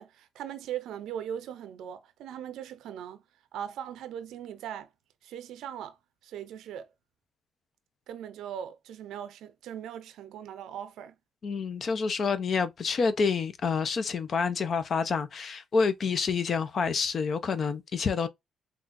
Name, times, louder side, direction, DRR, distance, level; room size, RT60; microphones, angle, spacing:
voice 1, 0.0-3.2 3.5-4.9 5.2-6.0 6.2-6.9 8.1-11.1, right 9 dB, 85° right, 0.5 m, -39 dB
voice 2, 11.4-18.3, left 5 dB, 50° left, 0.6 m, -28 dB
3.6 x 2.4 x 2.6 m
cardioid pair, 90°, 0 cm